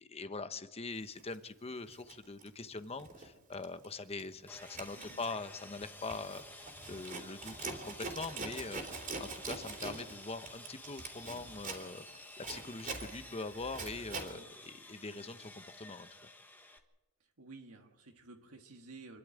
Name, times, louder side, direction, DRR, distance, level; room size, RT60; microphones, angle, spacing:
voice 1, 0.0-16.3, left 3 dB, 25° left, 11 dB, 0.9 m, -43 dB
Zipper (clothing), 1.2-1.4 1.9-3.3 3.5-3.9 4.2-14.3, right 3 dB, 35° right, 3.3 m, -44 dB
Sawing, 4.5-16.8, left 2 dB, 10° left, 1.5 m, -52 dB
voice 2, 17.2-19.2, right 3 dB, 75° right, 2 dB, 1.7 m, -53 dB
26.5 x 12.0 x 9.1 m, 1.1 s
head